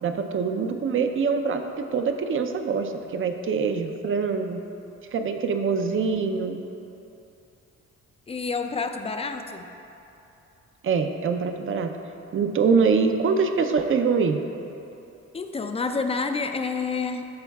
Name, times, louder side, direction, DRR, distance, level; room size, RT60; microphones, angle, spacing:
voice 1, 0.0-4.6 5.1-6.6 10.8-12.0 12.3-14.4, right 5 dB, 45° right, 6 dB, 0.5 m, -24 dB
voice 2, 8.3-9.7 15.3-17.3, left 4 dB, 20° left, 6 dB, 0.4 m, -28 dB
13.0 x 4.5 x 2.3 m, 2.9 s
cardioid pair, 90°, 30 cm